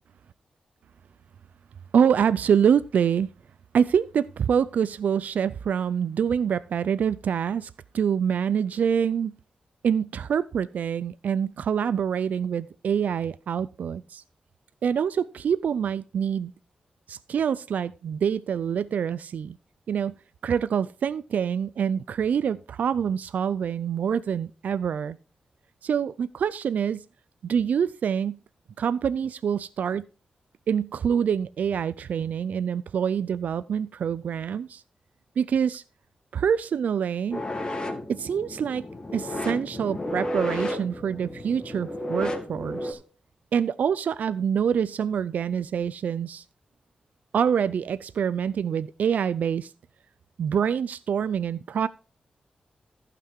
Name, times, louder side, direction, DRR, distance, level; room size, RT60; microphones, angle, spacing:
voice 1, 1.9-3.3 3.7-9.4 9.8-14.2 14.8-16.5 17.1-19.6 19.9-20.1 20.4-25.2 25.8-27.0 27.4-28.4 28.8-30.1 30.7-34.8 35.4-35.8 36.3-37.4 38.1-38.8 39.1-43.0 43.5-46.4 47.3-49.7 50.4-51.9, right 7 dB, 85° right, 0.4 m, -26 dB
sound 1, 37.3-42.9, left 1 dB, 35° left, 2.2 m, -32 dB
14.5 x 6.0 x 4.5 m
wide cardioid pair, 115°, 3 cm